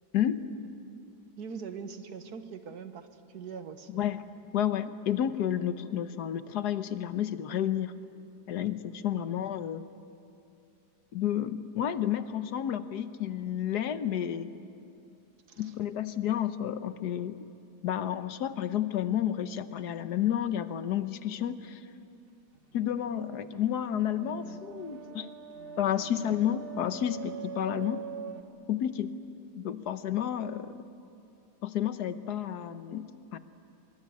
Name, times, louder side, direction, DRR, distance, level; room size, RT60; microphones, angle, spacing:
voice 1, 1.4-4.0 9.1-9.3 15.5-15.7, right 6 dB, 70° right, 8 dB, 1.9 m, -42 dB
voice 2, 4.5-7.9 8.5-9.9 11.1-14.5 15.6-17.4 17.8-21.8 22.7-25.3 25.8-28.0 28.7-29.1 29.5-30.8 31.6-33.4, left 10 dB, 75° left, 11 dB, 1.5 m, -31 dB
sound 1, 22.6-28.4, right 7 dB, 35° right, 1.4 m, -43 dB
24.0 x 24.0 x 9.7 m, 2.7 s
omnidirectional pair, 1.8 m